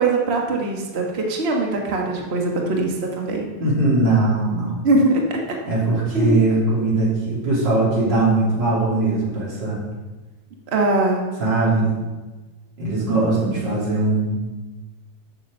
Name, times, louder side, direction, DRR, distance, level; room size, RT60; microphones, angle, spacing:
voice 1, 0.0-3.6 4.8-5.6 6.1-6.4 10.7-11.2, right 2 dB, 90° right, 0 dB, 0.5 m, -21 dB
voice 2, 3.6-4.8 5.6-9.8 11.4-11.9 12.8-14.4, right 2 dB, 40° right, -6 dB, 3.7 m, -20 dB
7.9 x 6.8 x 6.7 m, 1.2 s
omnidirectional pair, 3.3 m